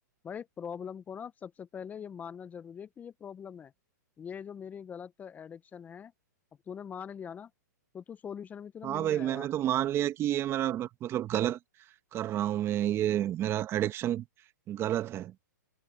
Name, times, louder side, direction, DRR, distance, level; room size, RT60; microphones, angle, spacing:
voice 1, 0.2-3.7 4.2-6.1 6.7-7.5 7.9-9.5, left 7 dB, 15° left, 0.8 m, -42 dB
voice 2, 8.8-11.6 12.1-14.2 14.7-15.3, right 12 dB, 25° right, 1.2 m, -29 dB
hypercardioid pair, 130°, 10 cm